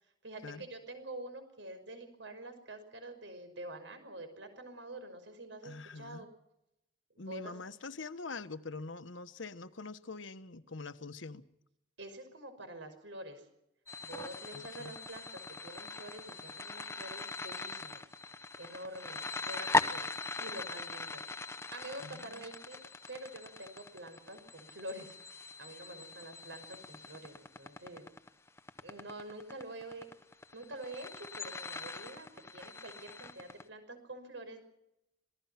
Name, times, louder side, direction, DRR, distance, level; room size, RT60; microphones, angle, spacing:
voice 1, 0.0-6.3 7.1-7.5 12.0-13.5 14.0-18.1 18.6-20.1 20.4-25.2 25.6-28.1 28.8-30.2 30.5-34.6, right 1 dB, 70° right, 5.8 m, -47 dB
voice 2, 5.6-6.3 7.2-11.4 14.5-14.9 22.0-22.4, left 3 dB, 75° left, 1.1 m, -44 dB
sound 1, 13.9-33.6, left 3 dB, 15° left, 1.0 m, -40 dB
27.0 x 20.0 x 5.9 m
head